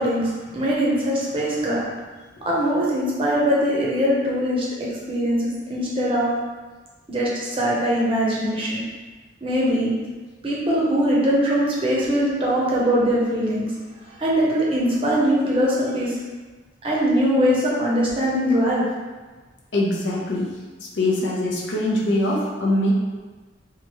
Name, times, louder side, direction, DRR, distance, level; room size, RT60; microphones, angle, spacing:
voice 1, 0.0-1.8 2.4-4.7 4.9-6.3 7.1-8.8 9.4-9.9 10.4-13.7 14.0-16.2 16.8-18.8, equal, 30° right, -6 dB, 0.6 m, -21 dB
voice 2, 19.7-20.5 21.0-22.9, left 1 dB, 70° left, -3 dB, 0.6 m, -22 dB
2.8 x 2.2 x 3.0 m, 1.3 s
head